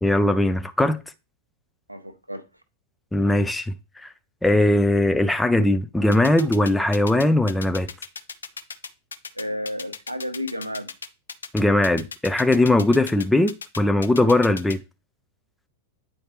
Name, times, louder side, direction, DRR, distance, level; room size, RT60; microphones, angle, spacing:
voice 1, 0.0-1.0 3.1-3.7 4.0-4.1 4.4-7.9 11.5-14.8, left 1 dB, 5° left, 0.5 m, -20 dB
voice 2, 1.9-2.4 9.3-10.9, left 1 dB, 85° right, 0.6 m, -32 dB
sound 1, 6.1-14.8, left 5 dB, 70° left, 0.5 m, -36 dB
8.9 x 4.3 x 3.3 m
figure-of-eight pair, 90°, 0 cm